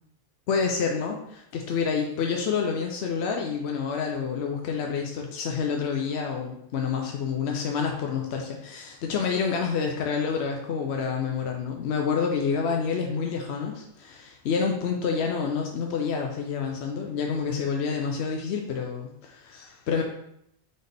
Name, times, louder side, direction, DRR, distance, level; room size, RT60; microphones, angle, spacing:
voice 1, 0.5-20.0, left 6 dB, 75° left, 1 dB, 0.9 m, -28 dB
4.0 x 3.9 x 3.4 m, 0.77 s
omnidirectional pair, 1.1 m